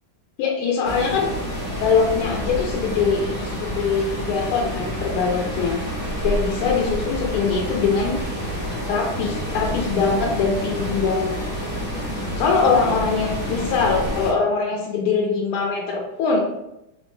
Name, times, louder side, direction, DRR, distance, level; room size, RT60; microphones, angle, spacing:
voice 1, 0.4-1.3 1.8-5.8 6.2-8.2 8.9-11.3 12.4-16.4, left 5 dB, 90° left, -1 dB, 1.5 m, -22 dB
sound 1, 0.8-14.3, equal, 55° left, 1.1 m, -28 dB
4.6 x 2.0 x 3.0 m, 0.87 s
omnidirectional pair, 2.3 m